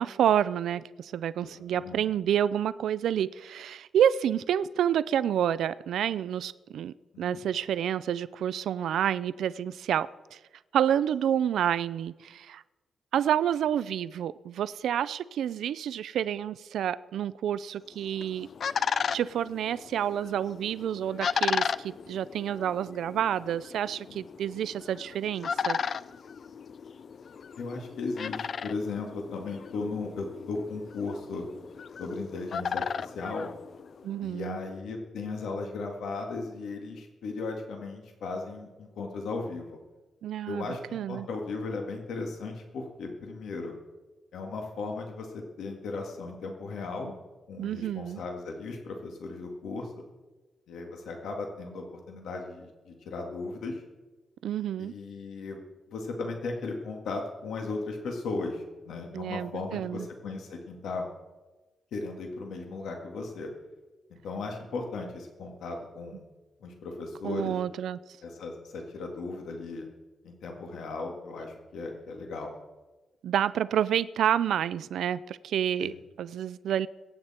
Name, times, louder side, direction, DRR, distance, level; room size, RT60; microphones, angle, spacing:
voice 1, 0.0-10.4 10.7-12.6 13.1-18.5 18.9-25.8 34.0-34.6 40.2-40.7 40.9-41.3 47.6-48.2 54.4-54.9 59.1-60.1 67.2-68.0 73.2-75.9 76.2-76.9, right 10 dB, 85° right, 17 dB, 0.4 m, -29 dB
voice 2, 1.4-2.0 7.1-7.4 24.1-24.2 27.6-31.5 32.0-33.5 34.2-39.8 40.5-43.7 44.3-47.1 47.5-49.9 50.7-53.8 54.8-55.6 55.9-61.1 61.9-63.5 64.2-66.2 66.6-67.6 68.2-69.9 70.2-72.5 75.8-76.0, left 3 dB, 85° left, 2 dB, 2.0 m, -36 dB
sound 1, 17.9-34.2, left 6 dB, 45° left, 0.3 m, -35 dB
22.0 x 9.2 x 4.3 m, 1.2 s
wide cardioid pair, 175°, 0 cm